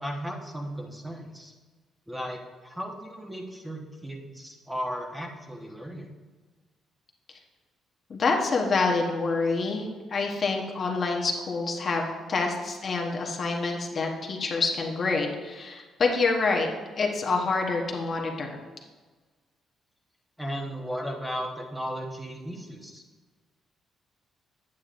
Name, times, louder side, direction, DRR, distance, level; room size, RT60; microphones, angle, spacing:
voice 1, 0.0-1.5 2.1-6.1 20.4-23.0, equal, 5° right, 0 dB, 1.1 m, -35 dB
voice 2, 8.1-16.7 17.0-18.6, left 3 dB, 45° left, 1 dB, 1.0 m, -27 dB
8.7 x 7.4 x 2.5 m, 1.3 s
cardioid pair, 90°, 0 cm